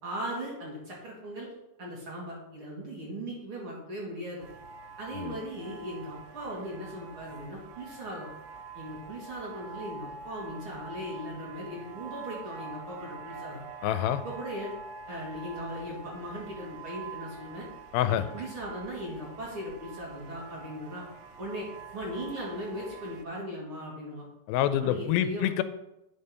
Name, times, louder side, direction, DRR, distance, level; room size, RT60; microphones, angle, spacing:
voice 1, 0.0-1.5 1.8-4.4 5.0-8.3 8.7-13.6 14.2-14.7 15.1-17.7 18.0-21.0 21.4-21.7 21.9-24.3 24.6-25.5, equal, 45° right, -4 dB, 2.3 m, -38 dB
sound 1, 4.4-23.2, right 4 dB, 85° right, 1.9 m, -45 dB
voice 2, 13.8-14.2 17.9-18.2 24.5-25.6, left 11 dB, 90° left, 11 dB, 2.4 m, -26 dB
8.9 x 5.3 x 5.5 m, 0.90 s
omnidirectional pair, 4.2 m